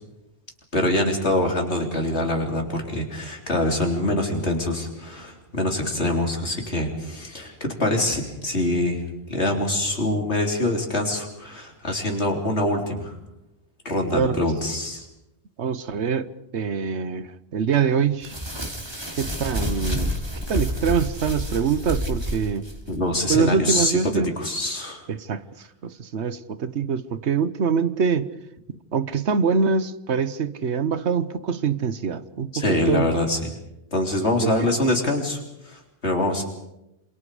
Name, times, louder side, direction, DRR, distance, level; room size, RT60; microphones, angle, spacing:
voice 1, 0.7-9.0 9.3-13.2 13.9-15.0 22.9-25.0 32.5-33.5 33.9-35.4 35.7-36.4, left 1 dB, 75° left, 4.0 m, -24 dB
voice 2, 15.6-16.3 16.5-18.3 19.2-22.7 23.3-24.3 25.1-25.4 25.8-28.3 28.9-33.2 34.4-34.7, right 6 dB, 80° right, 1.3 m, -24 dB
sound 1, 18.2-23.0, equal, 25° right, 3.2 m, -29 dB
27.5 x 27.0 x 5.0 m
omnidirectional pair, 1.1 m